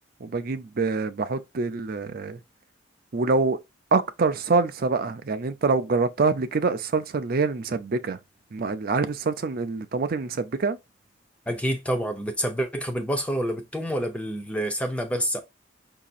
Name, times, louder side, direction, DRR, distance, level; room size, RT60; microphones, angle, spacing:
voice 1, 0.2-2.4 3.1-3.6 3.9-8.2 8.5-10.8, right 4 dB, 50° right, 0.5 m, -25 dB
voice 2, 11.5-15.4, equal, 5° left, 0.7 m, -28 dB
4.9 x 2.8 x 2.4 m
head